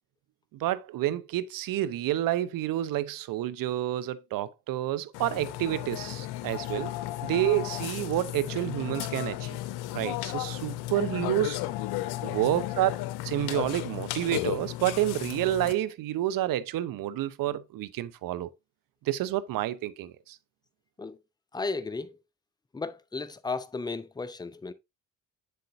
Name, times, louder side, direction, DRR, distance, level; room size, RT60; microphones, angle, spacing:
voice 1, 0.5-6.9 7.2-9.6 9.9-11.6 12.2-12.9 13.2-18.5 19.0-20.4, right 13 dB, 45° right, 0.7 m, -29 dB
Burping eructation, 5.1-15.7, left 15 dB, 55° left, 0.7 m, -34 dB
voice 2, 21.5-22.2 22.7-24.7, left 3 dB, 10° left, 0.6 m, -34 dB
7.6 x 6.7 x 2.6 m
figure-of-eight pair, 45°, 47 cm